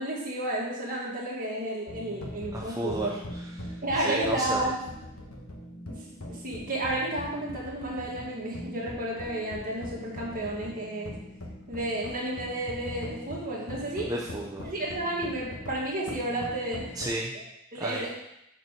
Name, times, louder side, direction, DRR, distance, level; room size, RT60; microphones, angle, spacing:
voice 1, 0.0-3.2 3.8-4.7 6.3-11.1 11.7-14.1 14.6-16.9 17.7-18.1, right 1 dB, 40° right, -4 dB, 1.9 m, -31 dB
sound 1, 1.9-17.2, left 1 dB, 70° left, 1.2 m, -42 dB
voice 2, 2.5-4.6 14.1-14.7 17.0-17.3 17.8-18.1, right 1 dB, 15° right, -2 dB, 0.6 m, -33 dB
6.6 x 4.5 x 5.2 m, 0.84 s
head